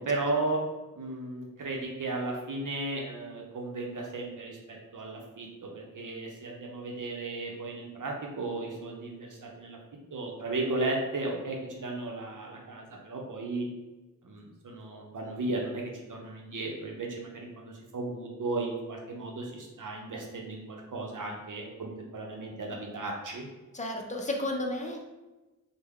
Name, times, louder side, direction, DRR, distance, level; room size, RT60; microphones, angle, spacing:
voice 1, 0.0-0.6 1.0-9.8 10.1-13.7 14.2-15.8 16.1-23.5, right 2 dB, 70° right, 0 dB, 0.7 m, -35 dB
voice 2, 23.7-25.0, left 1 dB, 20° left, 1 dB, 0.5 m, -32 dB
3.3 x 2.1 x 3.5 m, 1.1 s
wide cardioid pair, 75°, 33 cm